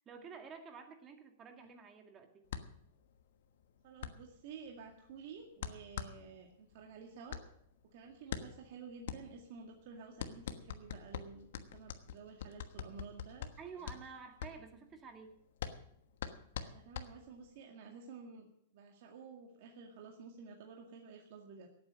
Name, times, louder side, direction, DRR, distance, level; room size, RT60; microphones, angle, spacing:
voice 1, 0.0-2.4 13.6-15.4, right 5 dB, 25° right, 5 dB, 2.0 m, -51 dB
sound 1, 2.5-17.6, left 8 dB, 75° left, 1.2 m, -45 dB
voice 2, 3.8-7.4 7.8-13.5 13.8-13.9 16.6-18.5 18.7-21.7, right 5 dB, 55° right, 1 dB, 2.0 m, -52 dB
17.5 x 8.7 x 6.3 m, 0.71 s
supercardioid pair, 150°, 0 cm